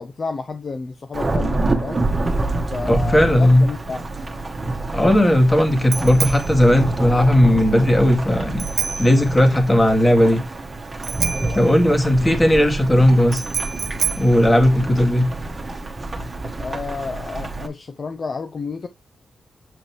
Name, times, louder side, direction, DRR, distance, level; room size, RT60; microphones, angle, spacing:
voice 1, 0.0-2.1 2.7-4.1 11.3-12.0 16.6-18.9, left 4 dB, 45° left, 0.6 m, -31 dB
Thunderstorm / Rain, 1.1-17.7, right 2 dB, 30° right, 1.5 m, -27 dB
voice 2, 2.9-3.7 4.9-8.6 9.0-10.4 11.5-13.4 14.2-15.3, left 1 dB, 20° left, 2.2 m, -16 dB
Bicycle bell, 4.2-15.4, right 6 dB, 65° right, 0.8 m, -31 dB
7.9 x 5.3 x 3.1 m
cardioid pair, 85°, 0 cm